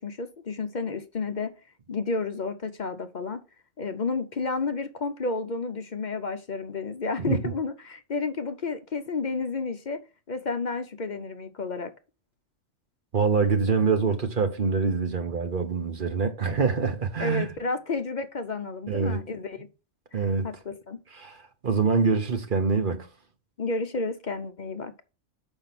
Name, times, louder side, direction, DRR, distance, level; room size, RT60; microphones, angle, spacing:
voice 1, 0.0-1.5 1.9-3.4 3.8-10.0 10.3-11.9 17.2-19.7 20.1-21.0 23.6-24.9, left 4 dB, 45° left, 0.7 m, -31 dB
voice 2, 7.2-7.5 13.1-17.5 18.9-19.2 20.1-20.5 21.1-23.1, right 5 dB, 45° right, 1.1 m, -25 dB
6.8 x 5.4 x 5.9 m
omnidirectional pair, 1.3 m